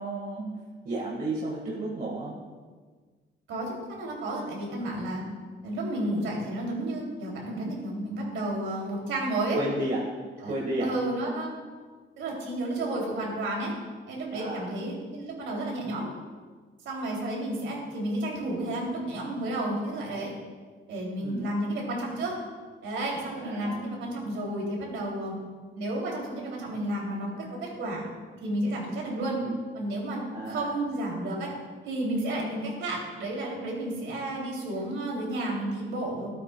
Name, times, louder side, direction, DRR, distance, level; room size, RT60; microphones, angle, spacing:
voice 1, 0.0-2.4 9.5-10.1 10.4-11.0 14.3-14.7 21.2-21.5 23.4-23.9 29.4-29.6 30.3-30.7, right 1 dB, 45° right, -4 dB, 1.6 m, -32 dB
voice 2, 3.5-5.2 5.6-9.6 10.4-10.5 10.8-11.5 12.2-13.7 14.1-16.1 16.8-20.3 20.9-22.3 22.8-25.4 25.7-27.3 27.6-28.1 28.4-29.4 29.7-30.2 30.4-31.5 31.8-36.3, right 1 dB, 80° right, -2 dB, 2.8 m, -31 dB
13.0 x 8.4 x 2.2 m, 1.5 s
cardioid pair, 90°, 20 cm